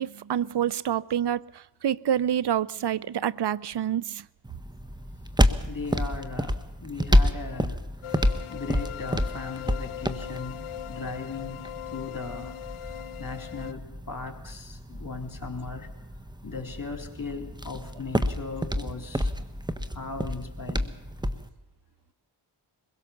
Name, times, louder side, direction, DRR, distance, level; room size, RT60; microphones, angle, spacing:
voice 1, 0.0-4.2, right 10 dB, 55° right, 22 dB, 0.6 m, -27 dB
sound 1, 4.4-21.5, equal, 10° right, 1.3 m, -29 dB
voice 2, 5.7-7.8 8.5-10.6 10.9-12.5 13.2-15.9 16.4-19.3 19.9-20.9, left 4 dB, 40° left, 4 dB, 3.8 m, -38 dB
sound 2, 8.0-13.7, left 12 dB, 85° left, 0.7 m, -40 dB
22.5 x 16.5 x 7.2 m, 1.0 s
cardioid pair, 40°, 49 cm